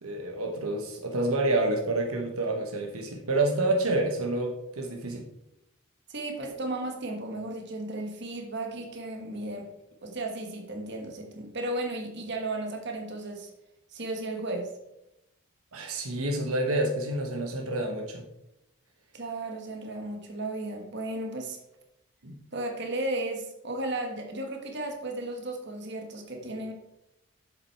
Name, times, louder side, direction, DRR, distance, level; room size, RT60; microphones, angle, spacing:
voice 1, 0.0-5.3 15.7-18.2 22.2-22.4, right 2 dB, 80° right, 2 dB, 1.2 m, -28 dB
voice 2, 6.1-9.7 10.0-13.5 13.9-14.7 19.1-21.6 22.5-26.7, right 2 dB, 50° right, 3 dB, 1.5 m, -34 dB
7.6 x 7.4 x 4.6 m, 0.86 s
head